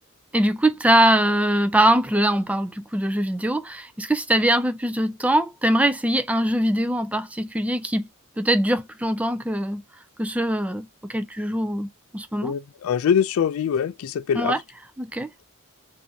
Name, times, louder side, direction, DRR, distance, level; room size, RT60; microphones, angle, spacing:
voice 1, 0.3-8.1 8.4-9.8 10.2-12.5 14.4-14.6 15.0-15.3, right 1 dB, 5° right, 0.4 m, -22 dB
voice 2, 12.4-14.6, left 7 dB, 65° left, 0.3 m, -23 dB
4.5 x 2.6 x 2.7 m
head